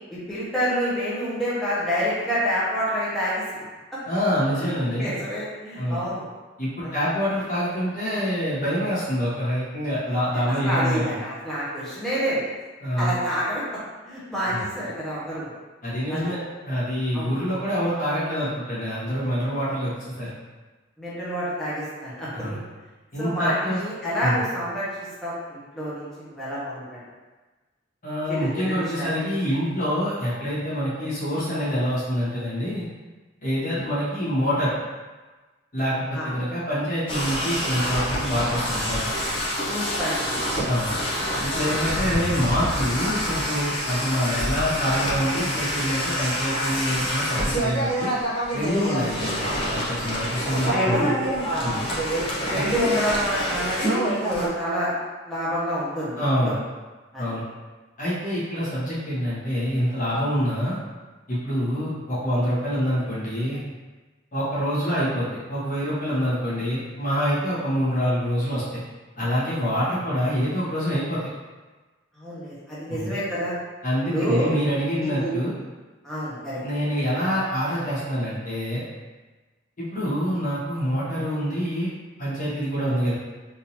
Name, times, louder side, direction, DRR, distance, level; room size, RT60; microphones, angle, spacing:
voice 1, 0.1-3.6 3.9-4.0 4.6-6.2 6.8-7.0 10.6-12.5 13.0-13.6 14.1-15.5 16.1-16.3 17.1-17.3 21.0-22.6 23.2-27.0 28.3-29.1 36.1-36.2 39.7-40.9 50.7-51.1 51.5-51.6 52.4-54.9 55.2-56.5 57.1-57.2 64.9-65.0 72.1-73.6 74.1-74.5 75.0-75.3 76.0-76.6, equal, ahead, -10 dB, 0.9 m, -28 dB
voice 2, 4.1-5.1 5.7-6.0 6.6-11.2 12.8-13.1 14.5-14.6 15.8-16.4 16.6-20.3 22.3-22.6 23.1-23.8 24.2-24.4 28.0-32.8 33.4-34.7 35.7-39.1 40.7-41.0 41.4-48.1 48.5-51.1 51.6-51.8 52.5-52.9 56.2-56.6 57.2-57.4 58.0-60.8 61.3-63.6 64.3-68.8 69.2-71.2 72.9-73.2 73.8-75.5 76.6-78.8 79.8-81.9 82.2-83.2, equal, 45° left, -10 dB, 1.4 m, -26 dB
sound 1, 37.1-54.5, equal, 30° left, 0.7 m, -27 dB
3.7 x 2.7 x 2.9 m, 1.3 s
head